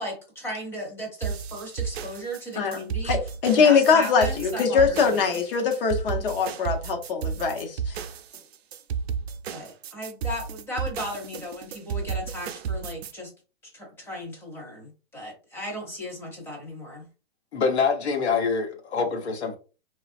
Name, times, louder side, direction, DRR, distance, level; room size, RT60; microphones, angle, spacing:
voice 1, 0.0-3.2 3.5-5.4 9.5-13.3 13.6-17.1, equal, 5° left, 0.7 m, -36 dB
sound 1, 1.2-13.1, right 6 dB, 75° right, 0.5 m, -32 dB
voice 2, 3.0-8.0, left 5 dB, 60° left, 1.0 m, -22 dB
voice 3, 17.5-19.6, left 5 dB, 85° left, 1.0 m, -25 dB
3.2 x 2.4 x 2.5 m
hypercardioid pair, 150°, 32 cm